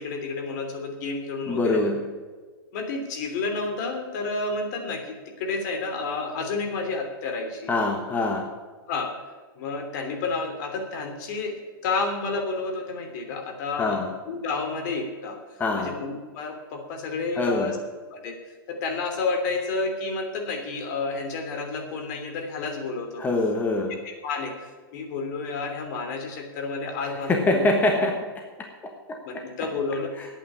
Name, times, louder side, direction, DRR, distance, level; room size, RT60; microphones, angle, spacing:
voice 1, 0.0-1.8 2.7-7.7 8.9-9.1 9.6-14.0 14.3-15.4 15.8-17.8 18.1-18.4 18.7-23.2 24.0-27.6 29.2-30.1, left 3 dB, 50° left, 5 dB, 3.0 m, -30 dB
voice 2, 1.5-2.1 7.7-8.5 13.8-14.1 15.6-16.0 17.4-17.8 23.2-24.0 27.0-28.3 28.8-29.5 30.2-30.3, left 2 dB, 15° left, 3 dB, 1.3 m, -25 dB
10.5 x 8.8 x 8.6 m, 1.5 s
hypercardioid pair, 135°, 12 cm